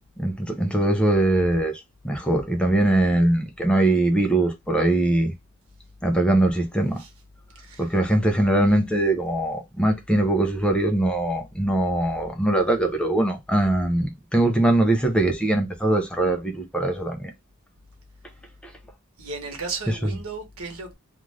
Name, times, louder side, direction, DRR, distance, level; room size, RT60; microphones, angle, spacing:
voice 1, 0.2-5.3 6.0-7.0 7.8-17.3 18.6-18.7 20.0-20.1, right 1 dB, 5° left, 0.6 m, -22 dB
voice 2, 7.6-7.9 19.2-21.0, right 4 dB, 80° right, 1.1 m, -35 dB
2.5 x 2.4 x 3.2 m
head